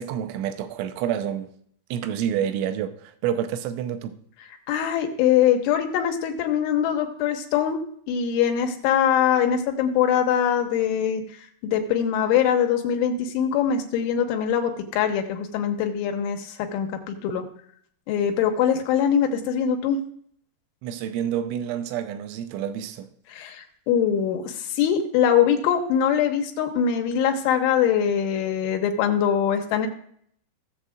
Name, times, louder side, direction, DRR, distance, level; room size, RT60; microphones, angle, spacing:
voice 1, 0.0-1.5 1.9-4.2 20.8-23.1, right 9 dB, 85° right, 3.0 m, -28 dB
voice 2, 4.7-7.8 8.1-11.2 11.6-17.4 18.1-20.0 23.3-29.9, left 8 dB, 85° left, 3.4 m, -23 dB
17.0 x 7.3 x 2.4 m
omnidirectional pair, 5.5 m